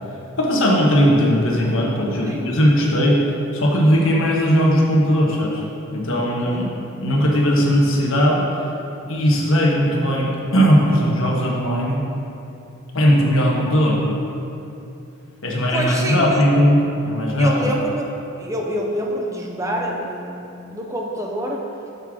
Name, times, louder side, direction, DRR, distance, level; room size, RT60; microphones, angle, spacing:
voice 1, 0.4-3.2 3.5-5.6 5.9-6.7 7.0-8.4 9.1-12.0 12.9-14.0 15.4-17.5, equal, 75° left, -2 dB, 1.2 m, -18 dB
voice 2, 6.2-6.8 15.6-16.4 17.4-18.1 18.4-21.7, equal, 15° right, 0 dB, 0.5 m, -27 dB
6.7 x 3.6 x 6.2 m, 2.8 s
head